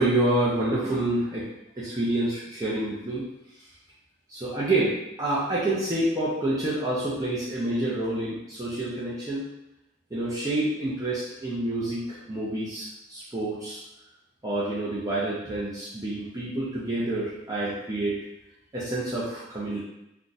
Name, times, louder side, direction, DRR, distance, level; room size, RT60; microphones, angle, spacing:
voice 1, 0.0-3.2 4.3-9.4 10.1-13.8 14.4-18.2 18.7-19.8, right 1 dB, 20° right, -8 dB, 0.5 m, -28 dB
2.5 x 2.3 x 3.9 m, 0.89 s
head